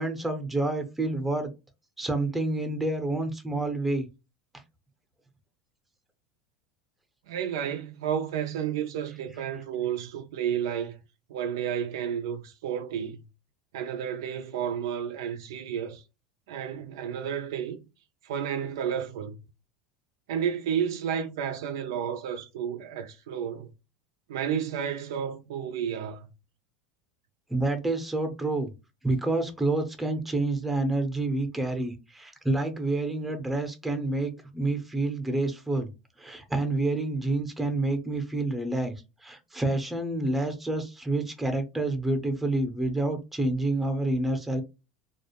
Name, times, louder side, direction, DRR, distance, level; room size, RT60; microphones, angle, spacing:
voice 1, 0.0-1.5 2.0-4.1 27.5-28.7 29.0-35.9 36.2-44.6, right 2 dB, 5° right, 0.7 m, -28 dB
voice 2, 7.3-11.0 11.3-13.2 13.7-16.0 16.5-17.8 18.2-19.4 20.3-23.7 24.3-26.3, right 8 dB, 80° right, 0.4 m, -31 dB
2.4 x 2.1 x 2.9 m
hypercardioid pair, 95°, 2 cm